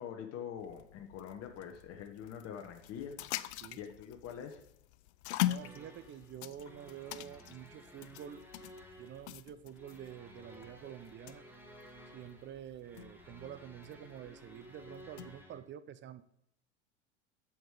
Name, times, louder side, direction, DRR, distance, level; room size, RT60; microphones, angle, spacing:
voice 1, 0.0-3.2 3.8-4.6, left 8 dB, 40° left, 4 dB, 1.2 m, -44 dB
sound 1, 0.6-15.4, left 15 dB, 65° left, 0.6 m, -43 dB
voice 2, 5.4-8.4 9.0-11.5 12.1-16.2, right 10 dB, 30° right, 14 dB, 0.7 m, -48 dB
sound 2, 5.6-15.6, equal, 5° right, 1.9 m, -55 dB
7.7 x 7.3 x 4.8 m, 0.75 s
hypercardioid pair, 85°, 36 cm